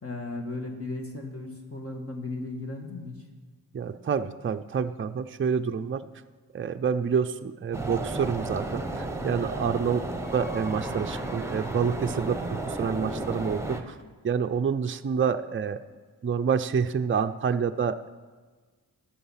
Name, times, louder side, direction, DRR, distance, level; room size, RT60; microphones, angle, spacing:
voice 1, 0.0-3.2, left 2 dB, 40° left, 2 dB, 1.7 m, -36 dB
voice 2, 3.7-6.1 6.5-10.1 10.3-13.9 14.2-15.8 16.2-18.1, right 6 dB, 35° right, 8 dB, 0.5 m, -28 dB
sound 1, 7.7-13.8, right 2 dB, 5° right, 1.2 m, -33 dB
12.5 x 8.5 x 5.7 m, 1.4 s
wide cardioid pair, 75°, 37 cm